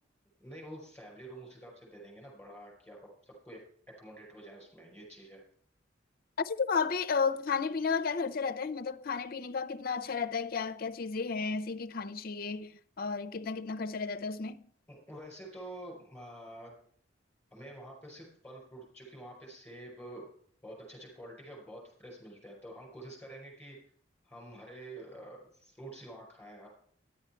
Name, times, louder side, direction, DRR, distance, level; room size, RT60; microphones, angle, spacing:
voice 1, 0.4-3.0 3.2-3.6 4.0-5.4 14.9-16.8 17.5-20.2 20.6-23.8 24.2-26.7, right 1 dB, 5° left, 5.2 m, -48 dB
voice 2, 6.4-12.7 13.0-14.7, left 5 dB, 50° left, 0.6 m, -33 dB
10.5 x 8.8 x 4.4 m
head